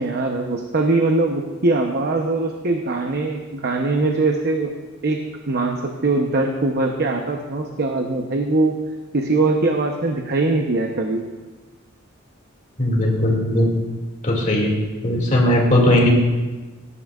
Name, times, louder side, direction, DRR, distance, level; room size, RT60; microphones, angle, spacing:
voice 1, 0.0-4.7 5.0-5.2 5.5-8.7 9.1-11.2, right 2 dB, 55° right, 3 dB, 0.9 m, -21 dB
voice 2, 12.8-13.7 14.2-14.7 15.0-16.1, left 1 dB, 40° left, -1 dB, 2.3 m, -18 dB
18.5 x 11.0 x 2.4 m, 1.2 s
head